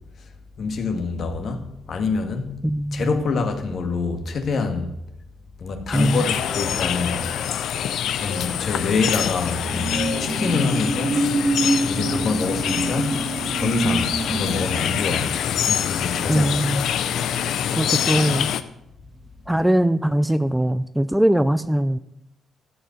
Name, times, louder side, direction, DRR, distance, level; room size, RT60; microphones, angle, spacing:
voice 1, 0.6-2.6 2.9-4.9 5.6-7.3 8.2-11.4 11.9-13.2 13.5-15.3 15.6-16.7, left 4 dB, 55° left, 1.7 m, -26 dB
voice 2, 2.6-3.1 5.9-6.3 16.3-16.8 17.7-18.5 19.5-22.0, right 1 dB, 5° right, 0.5 m, -21 dB
sound 1, 5.7-11.4, left 1 dB, 15° left, 1.0 m, -42 dB
sound 2, 5.9-18.6, left 9 dB, 75° left, 0.6 m, -25 dB
sound 3, 9.1-17.8 18.2-18.4, right 2 dB, 20° right, 1.4 m, -27 dB
13.5 x 5.5 x 7.8 m
cardioid pair, 90°, 0 cm